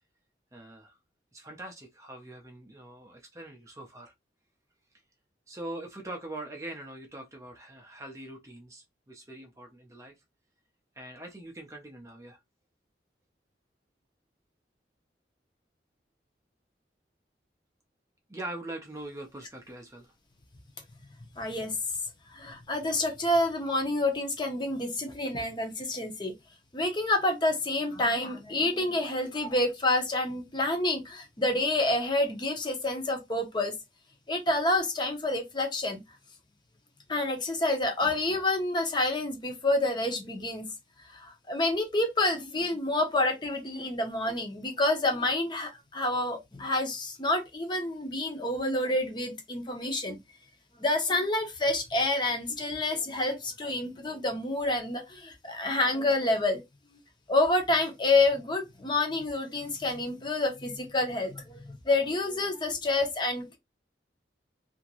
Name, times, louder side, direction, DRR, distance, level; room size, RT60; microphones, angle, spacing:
voice 1, 0.5-0.9 1.3-4.1 5.5-10.1 11.0-12.4 18.3-20.1, right 1 dB, 15° right, 0.5 m, -42 dB
voice 2, 21.4-21.8 22.3-26.3 26.7-33.7 34.3-36.0 37.1-40.7 41.1-50.2 50.8-56.6 57.3-63.6, left 2 dB, 25° left, 0.7 m, -28 dB
2.8 x 2.5 x 2.8 m
head